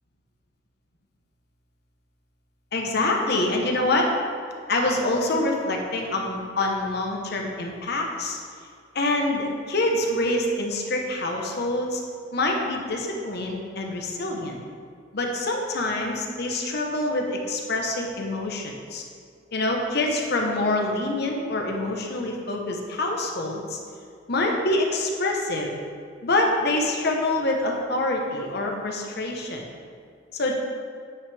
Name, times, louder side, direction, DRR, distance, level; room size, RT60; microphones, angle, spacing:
voice 1, 2.7-4.1 4.7-8.4 8.9-12.0 12.3-14.6 15.1-19.0 19.5-23.8 24.3-25.7 26.2-29.7 30.3-30.5, left 2 dB, 60° left, 1 dB, 1.0 m, -26 dB
9.3 x 5.2 x 3.5 m, 2.2 s
head